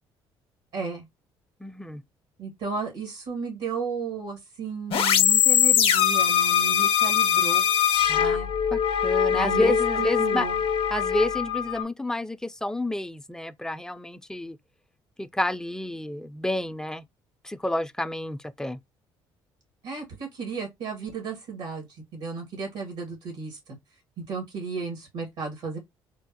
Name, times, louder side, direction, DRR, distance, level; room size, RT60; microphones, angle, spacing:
voice 1, 0.7-1.1 2.4-7.7 8.2-8.5 9.3-10.6 19.8-21.9 22.1-23.8 24.3-25.8, right 5 dB, 80° right, 1.6 m, -34 dB
voice 2, 1.6-2.0 8.1-8.4 8.7-10.5 10.9-14.6 15.2-17.0 17.4-18.8, left 1 dB, 5° left, 0.3 m, -30 dB
sound 1, 4.9-11.8, left 9 dB, 60° left, 0.6 m, -22 dB
3.7 x 2.0 x 2.7 m
supercardioid pair, 70°, 11 cm